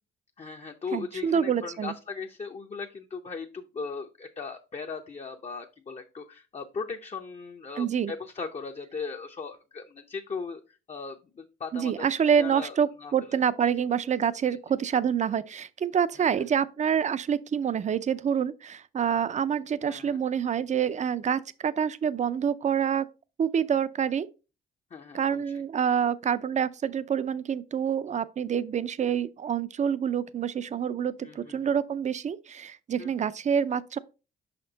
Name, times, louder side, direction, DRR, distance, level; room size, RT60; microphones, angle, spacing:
voice 1, 0.4-12.0 12.4-13.3 14.5-14.6 16.2-16.4 19.8-20.2 24.9-25.4 31.2-31.7 33.0-33.1, left 5 dB, 35° left, 0.6 m, -38 dB
voice 2, 0.9-1.9 7.8-8.1 11.7-23.1 23.4-24.3 25.1-34.0, right 8 dB, 35° right, 0.5 m, -27 dB
5.8 x 4.3 x 3.9 m
cardioid pair, 90°, 20 cm